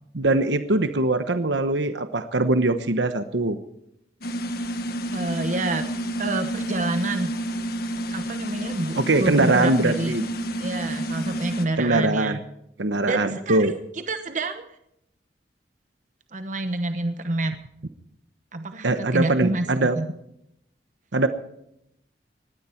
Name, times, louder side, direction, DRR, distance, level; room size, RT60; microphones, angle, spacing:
voice 1, 0.1-3.6 8.9-10.2 11.8-12.4 12.8-13.7 18.8-20.0 21.1-21.3, right 2 dB, 80° right, 10 dB, 1.1 m, -22 dB
sound 1, 4.2-11.7, right 1 dB, 60° left, 1.6 m, -30 dB
voice 2, 5.1-5.9 6.2-7.3 8.1-10.1 10.6-12.4 13.0-13.7 14.1-14.8 16.3-17.6 18.5-19.7 19.9-20.1, right 2 dB, 45° right, 8 dB, 1.0 m, -28 dB
19.5 x 16.0 x 4.5 m, 0.79 s
head